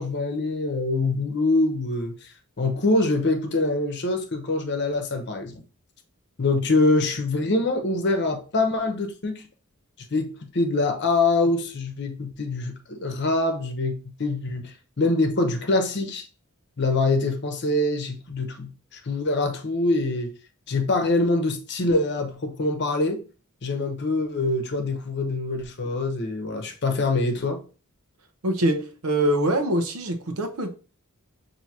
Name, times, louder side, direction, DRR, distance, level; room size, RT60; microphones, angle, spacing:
voice 1, 0.0-5.6 6.4-9.5 10.1-16.3 16.8-20.3 20.7-23.2 23.6-27.6, left 2 dB, 50° left, 0.8 m, -24 dB
voice 2, 28.4-30.7, right 1 dB, 75° right, 0.7 m, -24 dB
5.9 x 2.8 x 2.8 m
head